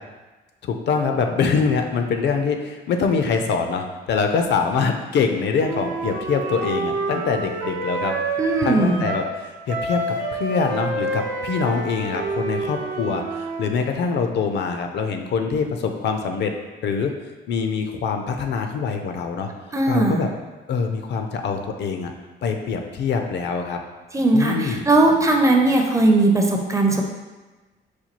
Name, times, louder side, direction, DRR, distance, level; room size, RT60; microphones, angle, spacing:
voice 1, 0.6-8.1 8.6-10.0 10.3-16.5 16.8-17.1 17.5-19.5 19.9-20.3 20.7-22.1 22.4-23.8 24.3-24.9, left 5 dB, 60° left, 5 dB, 0.4 m, -24 dB
Wind instrument woodwind instrument, 5.6-9.3 9.7-13.7, right 2 dB, 75° right, 0.6 m, -28 dB
voice 2, 8.4-9.1 19.7-20.2 24.1-27.0, right 2 dB, 15° right, 1 dB, 0.4 m, -18 dB
4.2 x 2.3 x 2.9 m, 1.2 s
cardioid pair, 90°, 20 cm